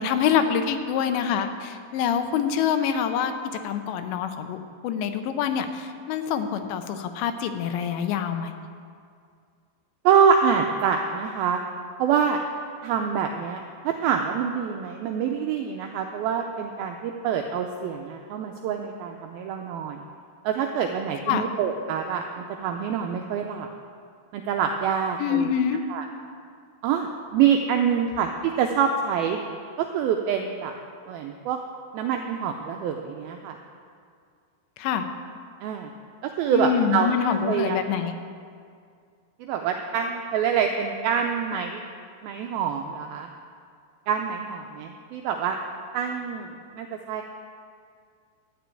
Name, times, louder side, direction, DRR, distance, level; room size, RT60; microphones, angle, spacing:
voice 1, 0.0-3.3 3.6-4.6 4.8-8.5 21.3-21.5 25.2-25.8 34.8-35.1 36.5-38.2, left 8 dB, 85° left, 8 dB, 3.1 m, -25 dB
voice 2, 10.1-11.6 12.0-12.4 12.8-20.0 20.4-23.7 24.3-25.5 25.9-26.1 26.8-29.4 29.8-30.7 31.1-31.6 31.9-33.6 35.6-35.9 36.2-37.1 37.4-37.8 39.4-41.8 42.2-43.3 44.1-45.6 45.9-47.2, right 7 dB, 90° right, 3 dB, 2.1 m, -26 dB
12.5 x 6.9 x 8.9 m, 2.2 s
omnidirectional pair, 5.0 m